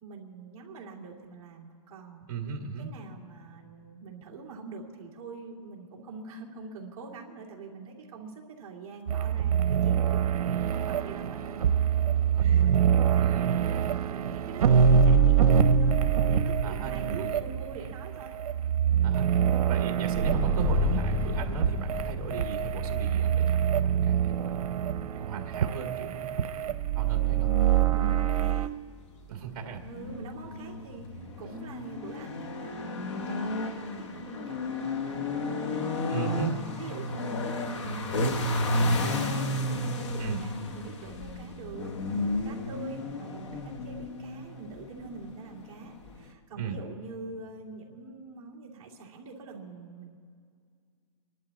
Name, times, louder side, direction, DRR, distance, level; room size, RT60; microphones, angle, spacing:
voice 1, 0.0-2.3 2.8-11.7 12.4-12.8 13.1-16.0 16.3-18.4 27.9-28.7 29.8-36.0 36.3-41.9 42.4-50.2, right 4 dB, 20° right, -5 dB, 2.3 m, -44 dB
voice 2, 2.3-2.9 12.3-13.5 16.6-17.4 19.0-26.3 26.6-27.5 29.3-29.8 36.1-36.6 40.2-40.4 46.6-46.8, right 7 dB, 35° right, 3 dB, 1.8 m, -37 dB
sound 1, 9.1-28.7, right 8 dB, 80° right, 0.7 m, -25 dB
sound 2, 20.1-31.4, equal, 10° left, 2.4 m, -34 dB
sound 3, 29.7-46.3, left 2 dB, 50° left, 1.2 m, -32 dB
26.5 x 12.0 x 4.1 m, 2.2 s
hypercardioid pair, 180°, 19 cm